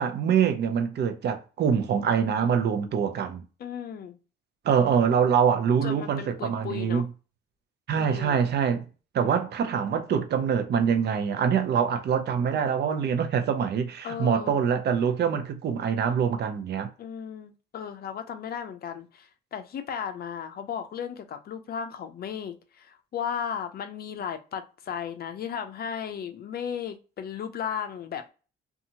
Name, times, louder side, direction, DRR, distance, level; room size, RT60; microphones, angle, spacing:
voice 1, 0.0-3.4 4.6-7.1 7.9-8.9 9.1-16.9, right 7 dB, 55° right, 0.5 m, -24 dB
voice 2, 3.6-4.2 5.8-7.0 8.0-8.4 14.0-14.6 17.0-28.3, left 8 dB, 50° left, 0.4 m, -35 dB
2.7 x 2.4 x 2.6 m
cardioid pair, 90°, 20 cm